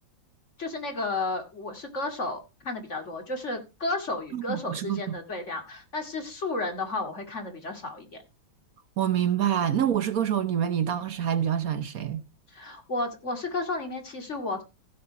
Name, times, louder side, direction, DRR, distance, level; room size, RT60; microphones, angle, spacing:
voice 1, 0.6-8.2 12.5-14.6, left 2 dB, 40° left, 2.6 m, -32 dB
voice 2, 4.3-5.0 9.0-12.2, right 9 dB, 55° right, 1.2 m, -26 dB
16.0 x 5.7 x 4.7 m
omnidirectional pair, 2.1 m